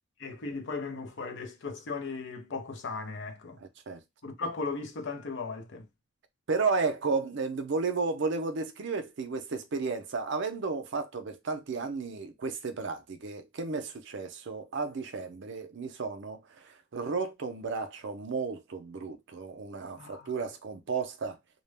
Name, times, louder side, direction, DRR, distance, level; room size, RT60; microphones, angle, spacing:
voice 1, 0.2-3.6 4.2-5.9 20.0-20.3, left 4 dB, 60° left, 0.6 m, -37 dB
voice 2, 3.6-4.0 6.5-21.4, right 4 dB, 60° right, 0.5 m, -33 dB
2.2 x 2.1 x 3.2 m
head